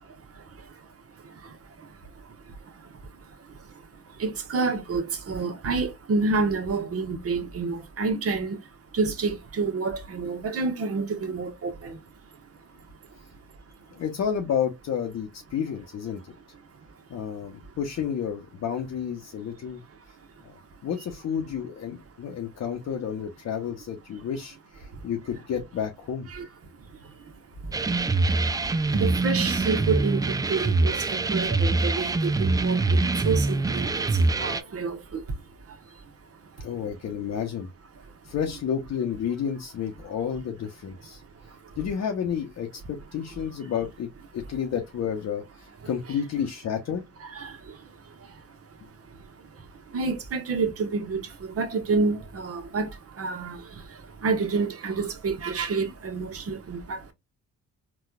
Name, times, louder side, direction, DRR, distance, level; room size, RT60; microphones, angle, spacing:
voice 1, 0.0-13.3 13.9-14.0 16.6-17.5 20.4-20.7 24.8-25.1 26.3-26.5 26.7-36.7 38.1-38.3 41.1-41.8 47.2-57.1, right 4 dB, 45° right, 1.0 m, -31 dB
voice 2, 13.9-16.3 17.1-19.8 20.4-20.6 20.8-26.3 36.6-37.7 38.2-41.2 41.8-44.1 44.3-47.0, left 8 dB, 55° left, 0.7 m, -31 dB
sound 1, 27.7-34.6, right 3 dB, 10° right, 0.3 m, -24 dB
4.0 x 2.3 x 2.3 m
supercardioid pair, 70°, 32 cm